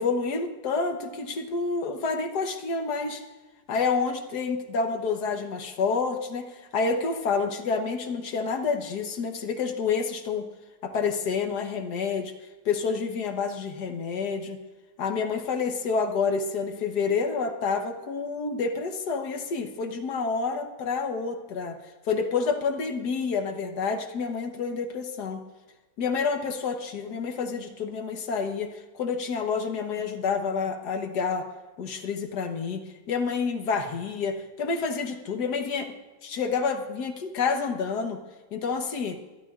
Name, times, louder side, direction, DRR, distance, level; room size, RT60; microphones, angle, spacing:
voice 1, 0.0-3.2 3.7-10.5 10.8-12.3 12.7-14.6 15.0-21.8 22.1-25.4 26.0-31.5 31.8-32.8 33.1-35.9 36.2-38.2 38.5-39.2, left 5 dB, 75° left, 5 dB, 1.7 m, -28 dB
22.5 x 12.5 x 2.4 m, 1.2 s
omnidirectional pair, 1.8 m